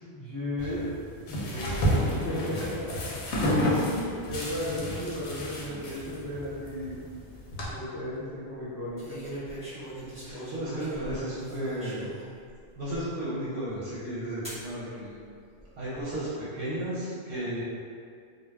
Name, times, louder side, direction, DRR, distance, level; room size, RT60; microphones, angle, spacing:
voice 1, 0.1-0.9 1.3-2.0 2.2-3.2 3.7-7.1 7.7-9.2, left 1 dB, 35° left, -11 dB, 0.3 m, -35 dB
sound 1, 0.6-7.6, equal, 85° left, 0.9 m, -31 dB
voice 2, 1.7-2.4 10.2-12.1 12.8-15.2 15.8-17.6, right 1 dB, 60° right, -9 dB, 0.7 m, -33 dB
sound 2, 7.3-7.7 9.0-12.3 12.9-13.0 14.4-14.7 15.5-16.0, right 1 dB, 5° right, 0.9 m, -40 dB
2.2 x 2.2 x 3.1 m, 2.3 s
omnidirectional pair, 1.1 m